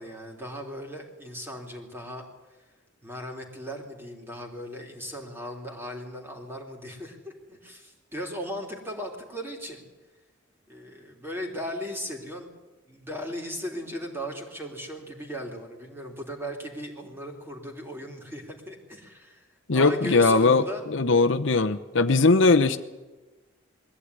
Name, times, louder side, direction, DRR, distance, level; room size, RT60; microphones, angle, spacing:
voice 1, 0.0-2.2 3.0-9.8 10.7-12.6 12.9-20.8, equal, 10° right, 1 dB, 3.3 m, -37 dB
voice 2, 19.7-22.8, left 3 dB, 65° left, 8 dB, 0.8 m, -20 dB
22.0 x 15.0 x 9.8 m, 1.2 s
head